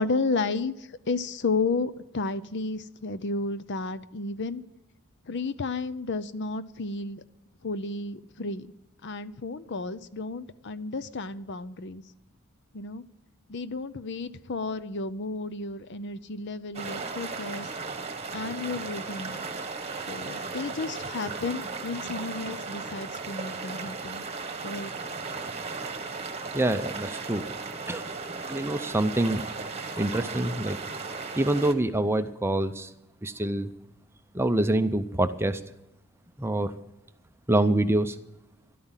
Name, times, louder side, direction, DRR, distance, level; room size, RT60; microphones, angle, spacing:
voice 1, 0.0-4.6 5.3-7.2 7.6-8.7 9.0-12.0 12.7-13.0 13.5-17.7 18.3-19.4 20.1-24.2 24.6-24.9, left 3 dB, 50° left, 14 dB, 0.6 m, -32 dB
sound 1, 16.7-31.7, right 4 dB, 30° right, 1.3 m, -36 dB
voice 2, 26.5-27.5 27.9-28.1 28.5-29.4 30.0-30.8 31.3-32.9 33.2-33.7 34.3-35.6 36.4-36.7 37.5-38.2, right 1 dB, 10° right, 10 dB, 0.6 m, -26 dB
12.5 x 12.0 x 7.4 m, 0.90 s
head